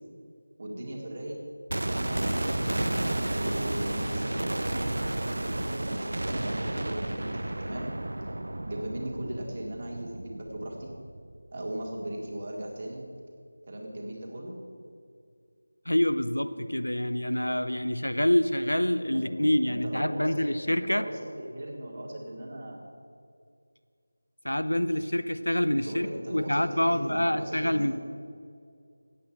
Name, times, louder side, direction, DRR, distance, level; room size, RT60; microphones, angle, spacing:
voice 1, 0.6-1.4 1.8-2.7 3.3-4.9 5.2-7.9 8.6-10.9 11.5-13.0 13.7-14.6 19.1-22.8 25.8-27.9, right 1 dB, 35° right, -1 dB, 1.9 m, -38 dB
sound 1, 1.7-11.7 12.0-12.1, right 1 dB, 60° right, 0.5 m, -32 dB
voice 2, 15.9-21.0 24.4-27.9, left 1 dB, 80° left, 11 dB, 0.6 m, -26 dB
8.6 x 8.0 x 8.5 m, 2.3 s
figure-of-eight pair, 165°, 0 cm